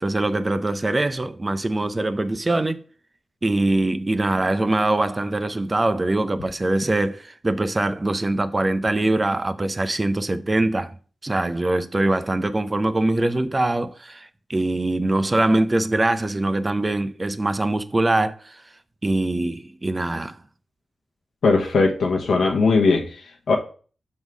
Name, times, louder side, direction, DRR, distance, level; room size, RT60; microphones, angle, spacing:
voice 1, 0.0-2.8 3.4-10.9 11.2-18.6 19.0-20.4, right 2 dB, 30° right, 0.6 m, -23 dB
voice 2, 21.4-23.5, left 4 dB, 80° left, 1.0 m, -19 dB
6.3 x 3.6 x 6.1 m
cardioid pair, 75°, 0 cm